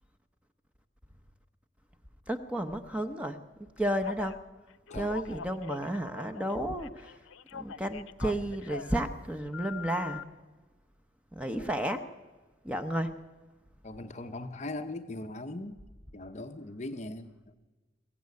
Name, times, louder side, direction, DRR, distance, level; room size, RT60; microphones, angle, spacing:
voice 1, 2.3-3.4 3.8-4.4 4.9-7.2 7.5-10.2 11.3-12.1 12.6-13.1, right 1 dB, 5° right, 8 dB, 0.8 m, -32 dB
Telephone, 4.0-4.4 4.9-6.5 6.8-9.0 9.5-10.2, left 7 dB, 90° left, 0.6 m, -42 dB
voice 2, 13.8-15.8 16.1-17.5, left 2 dB, 35° left, 7 dB, 0.8 m, -40 dB
22.5 x 15.0 x 9.5 m, 1.3 s
head